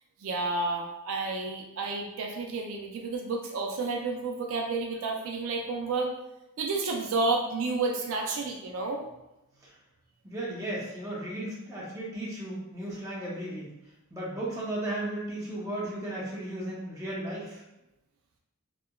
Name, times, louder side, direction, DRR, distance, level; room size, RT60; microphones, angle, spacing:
voice 1, 0.2-6.1 6.6-9.0, right 3 dB, 70° right, 1 dB, 0.3 m, -30 dB
voice 2, 10.2-13.7 14.1-17.6, right 1 dB, 15° right, -6 dB, 0.6 m, -35 dB
2.8 x 2.2 x 2.2 m, 0.93 s
head